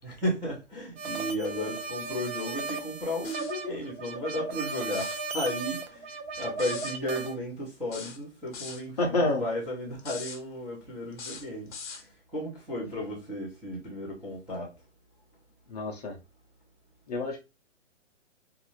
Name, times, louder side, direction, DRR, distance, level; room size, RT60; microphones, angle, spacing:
voice 1, 0.0-14.7, left 1 dB, 5° right, 0.6 m, -34 dB
sound 1, 1.0-7.3, right 4 dB, 60° right, 0.7 m, -36 dB
sound 2, 3.2-3.6 4.8-5.2 6.6-7.0 7.9-8.8 10.0-10.4 11.1-12.1, left 5 dB, 65° left, 0.8 m, -41 dB
voice 2, 9.0-9.4 15.7-16.2 17.1-17.4, left 2 dB, 35° left, 0.6 m, -28 dB
2.6 x 2.4 x 2.9 m
hypercardioid pair, 145°, 36 cm